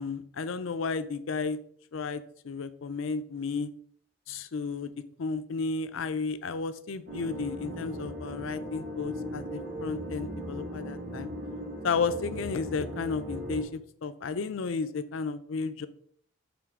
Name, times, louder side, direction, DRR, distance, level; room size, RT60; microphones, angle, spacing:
voice 1, 0.0-1.6 1.9-3.7 4.3-4.9 5.2-11.3 11.8-15.9, left 4 dB, 75° left, 12 dB, 0.5 m, -33 dB
sound 1, 7.1-13.6, equal, 80° right, 2.6 m, -38 dB
7.0 x 3.2 x 4.7 m, 0.62 s
head